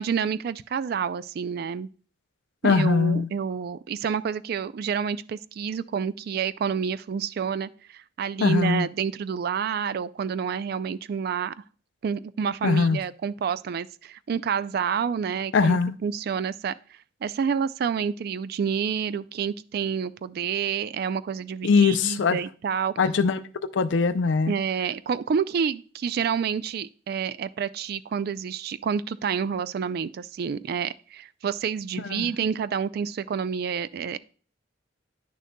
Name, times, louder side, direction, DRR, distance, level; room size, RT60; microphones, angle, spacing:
voice 1, 0.0-1.9 2.6-11.5 12.0-16.8 17.2-22.9 24.5-34.2, right 7 dB, 55° right, 0.3 m, -28 dB
voice 2, 2.6-3.3 8.4-8.9 12.6-13.0 15.5-16.0 21.6-22.4 23.0-23.4 23.7-24.5 32.1-32.3, left 4 dB, 80° left, 0.5 m, -21 dB
10.0 x 6.4 x 2.2 m
head